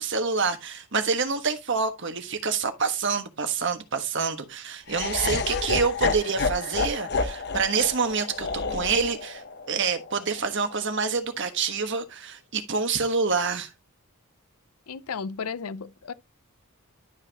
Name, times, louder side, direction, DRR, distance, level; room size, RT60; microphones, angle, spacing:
voice 1, 0.0-13.7, right 5 dB, 55° right, 1.3 m, -27 dB
Laughter, 4.9-11.0, left 4 dB, 50° left, 0.9 m, -30 dB
voice 2, 14.9-16.1, left 5 dB, 85° left, 0.6 m, -34 dB
11.5 x 5.8 x 2.9 m
head